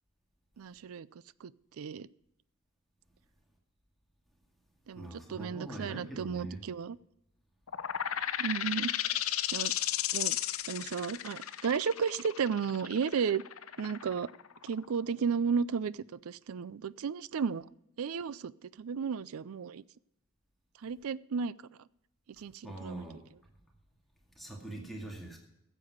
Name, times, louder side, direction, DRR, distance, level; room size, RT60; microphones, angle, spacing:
voice 1, 0.6-1.1 1.4-1.5 1.8-2.1 4.9-7.0 8.4-8.9 9.5-9.7 10.1-10.4 10.7-13.4 13.8-14.3 14.6-17.6 18.0-18.5 18.8-19.8 20.8-21.5 22.4-23.0, right 6 dB, 75° right, 20 dB, 0.4 m, -33 dB
voice 2, 4.9-6.6 22.6-23.2 24.4-25.4, right 1 dB, ahead, -1 dB, 2.1 m, -42 dB
sound 1, 7.7-15.0, left 11 dB, 70° left, 0.6 m, -34 dB
13.5 x 7.7 x 6.5 m, 0.84 s
head